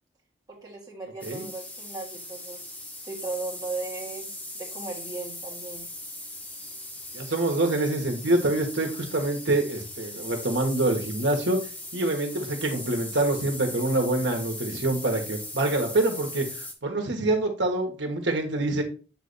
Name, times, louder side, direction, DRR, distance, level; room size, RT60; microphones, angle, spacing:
voice 1, 0.5-2.7 3.0-5.9, right 3 dB, 20° right, -3 dB, 1.8 m, -37 dB
sound 1, 1.2-16.7, left 1 dB, 10° left, 0.7 m, -39 dB
voice 2, 7.1-11.6 11.9-18.8, right 2 dB, 65° right, 3 dB, 1.3 m, -26 dB
7.6 x 3.3 x 4.0 m, 0.35 s
head